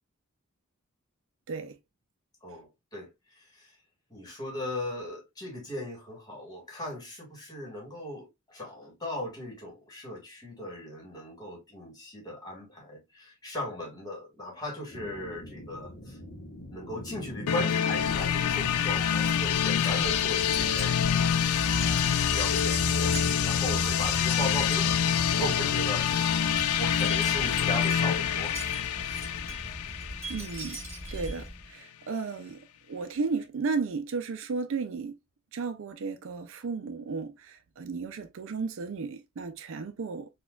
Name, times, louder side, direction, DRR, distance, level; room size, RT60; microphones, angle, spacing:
voice 1, 2.4-3.7 4.1-16.2 16.7-29.3, left 1 dB, 15° left, 1.4 m, -38 dB
sound 1, 14.9-26.6, left 1 dB, 45° left, 0.8 m, -45 dB
sound 2, 17.5-31.2, left 9 dB, 75° left, 0.3 m, -26 dB
Wind chime, 17.9-31.7, right 1 dB, 10° right, 2.1 m, -38 dB
voice 2, 30.3-30.8 31.1-32.6 32.9-35.2 35.5-40.3, right 4 dB, 60° right, 0.4 m, -34 dB
4.2 x 2.3 x 2.2 m
head